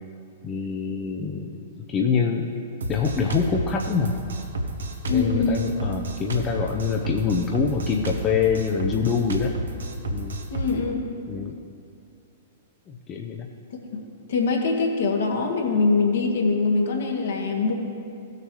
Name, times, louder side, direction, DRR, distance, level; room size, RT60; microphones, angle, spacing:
voice 1, 0.4-2.5 2.9-4.2 5.1-9.5 10.1-10.4 11.3-11.5 12.9-13.5, left 6 dB, 25° left, 1 dB, 0.6 m, -25 dB
Drum kit, 2.8-10.8, right 1 dB, 75° right, 1.0 m, -31 dB
voice 2, 5.1-5.7 10.5-11.0 13.9-17.7, left 4 dB, 65° left, 1 dB, 1.5 m, -23 dB
16.5 x 6.7 x 3.1 m, 2.5 s
figure-of-eight pair, 105°, 0 cm